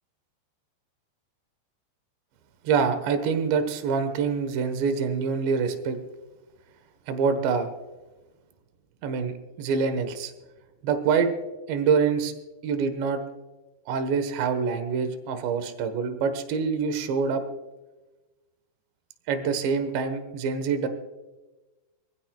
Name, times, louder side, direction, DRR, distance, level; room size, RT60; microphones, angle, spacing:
voice 1, 2.7-6.0 7.1-7.7 9.0-10.3 10.8-11.3 11.7-12.3 12.6-13.2 13.9-17.4 19.3-20.9, right 5 dB, 80° right, 9 dB, 3.6 m, -25 dB
26.0 x 15.0 x 2.4 m, 1.1 s
omnidirectional pair, 5.1 m